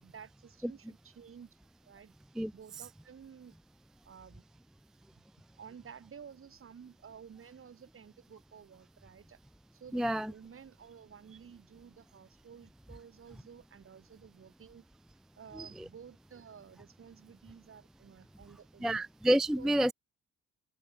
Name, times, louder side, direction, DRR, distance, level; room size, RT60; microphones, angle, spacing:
voice 1, 0.0-2.1 2.5-3.6 4.0-4.4 5.6-9.4 9.7-14.8 15.4-19.1 19.6-19.8, right 7 dB, 45° right, 3.0 m, -53 dB
voice 2, 9.9-10.3 15.6-15.9 18.8-19.9, right 1 dB, ahead, 0.4 m, -29 dB
cardioid pair, 90°, 30 cm